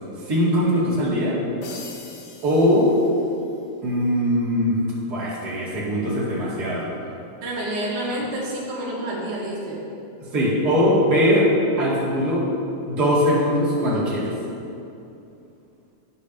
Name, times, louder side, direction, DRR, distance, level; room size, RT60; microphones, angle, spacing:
voice 1, 0.2-1.4 2.4-2.9 3.8-4.8 5.1-6.9 10.3-11.5 11.8-12.5 12.9-14.3, equal, 35° right, -8 dB, 2.7 m, -21 dB
sound 1, 1.6-3.7, left 4 dB, 65° left, 1.5 m, -42 dB
voice 2, 7.4-9.8, right 1 dB, 85° right, -4 dB, 2.9 m, -28 dB
18.0 x 6.5 x 2.8 m, 2.7 s
omnidirectional pair, 3.5 m